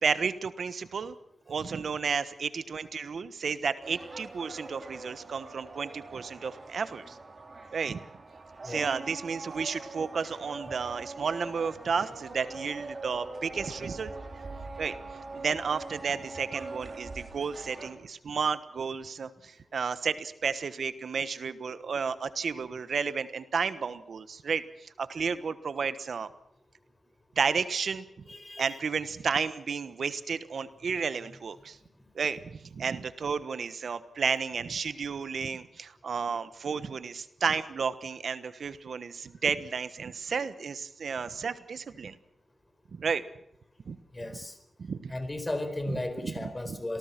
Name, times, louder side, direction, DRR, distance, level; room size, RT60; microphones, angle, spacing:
voice 1, 0.0-1.1 1.5-7.2 7.7-8.0 8.6-14.1 14.8-15.0 15.3-26.3 27.4-28.0 28.6-31.8 32.1-42.1 42.9-43.2 43.9-44.0 44.8-45.1 46.2-46.8, right 5 dB, 70° right, 13 dB, 1.2 m, -32 dB
sound 1, 3.8-17.9, right 3 dB, 40° right, 4.8 m, -43 dB
voice 2, 28.3-28.8 44.1-44.5 45.1-47.0, left 1 dB, 20° left, 10 dB, 4.4 m, -35 dB
27.5 x 18.5 x 6.0 m, 0.73 s
wide cardioid pair, 90°, 0 cm